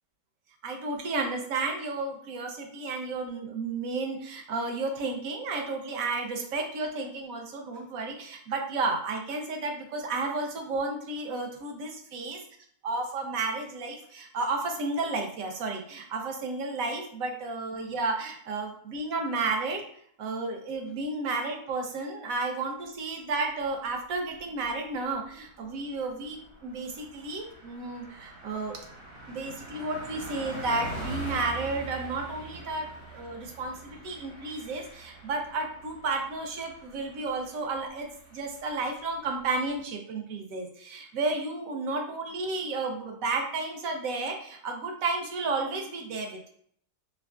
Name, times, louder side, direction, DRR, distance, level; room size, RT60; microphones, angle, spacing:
voice 1, 0.6-12.4 12.8-19.8 20.2-28.8 29.3-46.5, right 3 dB, 65° right, 3 dB, 1.1 m, -32 dB
Car passing by, 24.1-24.8 25.1-25.2 25.5-39.8, right 1 dB, 80° right, 1.7 m, -44 dB
4.6 x 3.5 x 2.3 m, 0.63 s
omnidirectional pair, 1.7 m